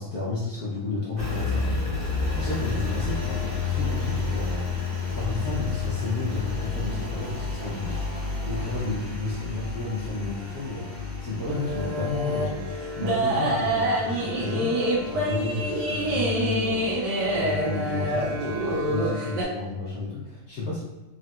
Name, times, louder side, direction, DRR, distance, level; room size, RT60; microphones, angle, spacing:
voice 1, 0.0-8.0 8.4-20.8, left 3 dB, 65° left, -6 dB, 0.9 m, -32 dB
Engine, 1.2-19.1, left 4 dB, 50° right, 1.4 m, -32 dB
sound 1, 11.5-19.4, right 1 dB, 65° right, 1.2 m, -26 dB
3.6 x 2.5 x 2.2 m, 1.2 s
omnidirectional pair, 2.1 m